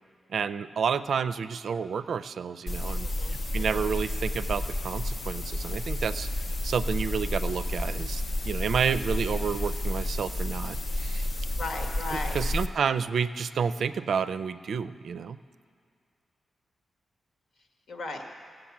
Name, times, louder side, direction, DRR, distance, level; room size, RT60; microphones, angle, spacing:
voice 1, 0.3-6.3 6.6-11.3 12.3-15.4, right 6 dB, 70° right, 13 dB, 0.4 m, -30 dB
sound 1, 2.7-12.7, left 1 dB, 45° left, 0.7 m, -31 dB
voice 2, 3.0-3.9 11.6-12.4 17.9-18.2, left 2 dB, 75° left, 3 dB, 1.6 m, -37 dB
17.5 x 7.9 x 7.2 m, 2.2 s
wide cardioid pair, 145°, 0 cm